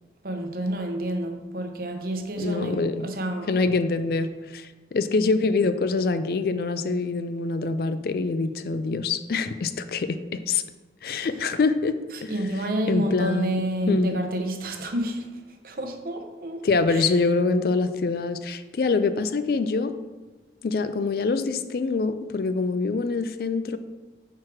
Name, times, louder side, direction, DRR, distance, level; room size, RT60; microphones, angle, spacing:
voice 1, 0.2-3.6 11.2-11.5 12.1-17.3, right 1 dB, 55° right, 4 dB, 0.8 m, -30 dB
voice 2, 2.4-3.1 3.5-10.6 11.0-12.3 12.9-13.6 13.9-14.2 16.6-19.9 20.6-23.8, left 4 dB, 55° left, 11 dB, 0.4 m, -25 dB
5.9 x 4.6 x 4.8 m, 1.3 s
head